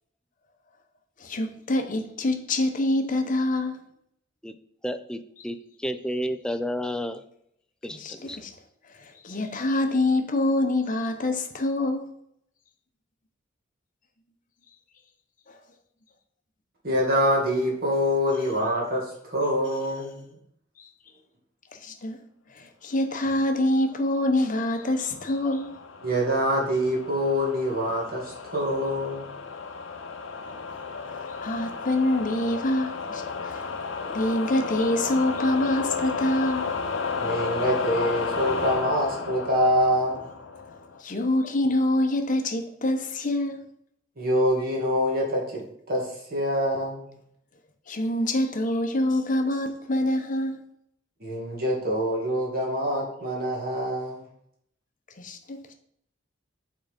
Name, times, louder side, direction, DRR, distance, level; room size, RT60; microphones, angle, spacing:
voice 1, 1.2-3.8 7.9-8.5 9.0-12.1 20.8-20.9 21.7-22.2 22.5-25.7 31.4-33.7 34.1-36.7 41.0-43.6 47.9-50.6 55.2-55.7, left 1 dB, 45° left, 0.9 m, -26 dB
voice 2, 4.8-7.2 7.8-8.4, equal, 5° left, 0.4 m, -31 dB
voice 3, 16.8-20.3 26.0-29.3 37.2-40.2 44.2-45.6 45.9-47.1 51.2-54.3, equal, 50° right, 1.9 m, -25 dB
sound 1, 24.5-41.0, left 4 dB, 75° left, 0.7 m, -33 dB
7.2 x 3.8 x 5.1 m
head